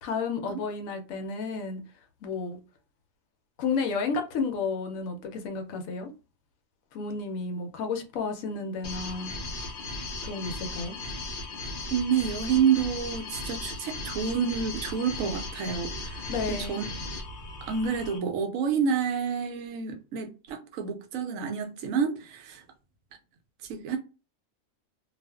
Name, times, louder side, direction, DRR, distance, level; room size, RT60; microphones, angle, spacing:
voice 1, 0.0-1.8 2.2-2.6 3.6-6.1 6.9-9.3 10.2-11.0 16.3-16.8, left 4 dB, 80° left, 1.0 m, -32 dB
sound 1, 8.8-18.2, left 2 dB, 50° left, 0.7 m, -37 dB
voice 2, 11.9-16.8 17.6-22.6 23.6-24.0, right 7 dB, 80° right, 0.9 m, -29 dB
2.5 x 2.4 x 2.2 m
omnidirectional pair, 1.4 m